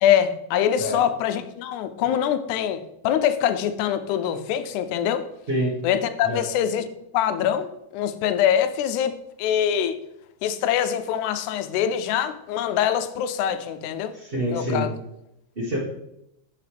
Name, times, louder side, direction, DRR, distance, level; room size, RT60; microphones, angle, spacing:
voice 1, 0.0-5.3 5.8-6.9 7.1-9.1 9.4-10.0 10.4-14.1 14.5-14.9, left 9 dB, 85° left, 10 dB, 2.0 m, -24 dB
voice 2, 14.1-14.8 15.6-15.8, equal, 45° right, -5 dB, 0.7 m, -26 dB
10.5 x 4.0 x 3.3 m, 0.83 s
omnidirectional pair, 3.4 m